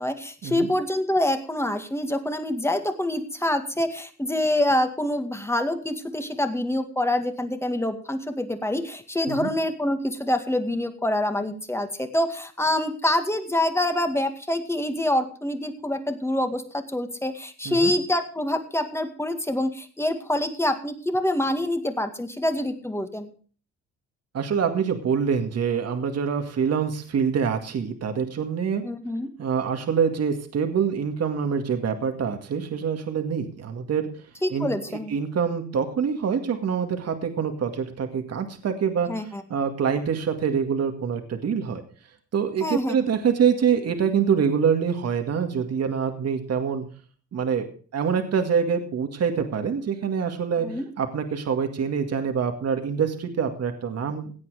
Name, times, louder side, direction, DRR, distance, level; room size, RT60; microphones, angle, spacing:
voice 1, 0.0-23.3 28.8-29.3 34.4-35.1 39.1-39.4 42.6-43.0 50.6-50.8, left 1 dB, 10° left, 7 dB, 2.0 m, -26 dB
voice 2, 24.3-28.9 29.4-34.1 34.5-34.7 35.1-39.1 39.5-41.8 42.3-46.9 47.3-47.7 47.9-50.7 51.0-54.3, right 7 dB, 55° right, 6 dB, 2.1 m, -25 dB
17.0 x 8.6 x 4.9 m, 0.41 s
cardioid pair, 90°, 30 cm